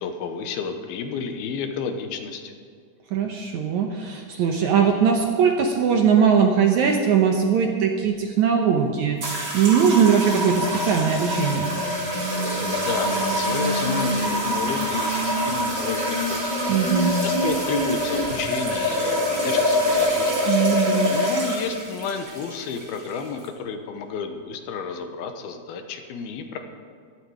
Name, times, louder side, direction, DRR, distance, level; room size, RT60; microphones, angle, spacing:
voice 1, 0.0-2.5 12.7-16.5 16.9-20.5 21.1-26.6, left 5 dB, 85° left, 6 dB, 3.0 m, -31 dB
voice 2, 3.1-11.7 16.7-17.3 20.5-21.1, right 7 dB, 70° right, 2 dB, 1.9 m, -20 dB
sound 1, 9.2-23.5, left 1 dB, 35° right, 4.7 m, -25 dB
sound 2, 10.1-18.4, equal, 45° left, 0.4 m, -30 dB
16.0 x 12.0 x 4.9 m, 2.2 s
omnidirectional pair, 4.3 m